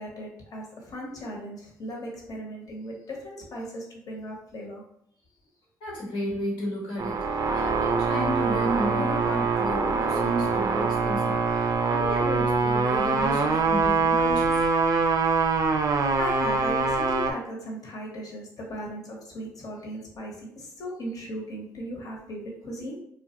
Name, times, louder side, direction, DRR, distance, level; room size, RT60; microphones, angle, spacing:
voice 1, 0.0-4.8 9.7-9.8 15.8-15.9 16.2-23.0, equal, 50° left, -1 dB, 0.9 m, -37 dB
voice 2, 5.8-7.2 7.5-14.6, equal, 85° left, -4 dB, 1.2 m, -32 dB
sound 1, 7.0-17.3, right 4 dB, 45° right, 0.4 m, -24 dB
2.3 x 2.1 x 2.8 m, 0.70 s
supercardioid pair, 70°, 8 cm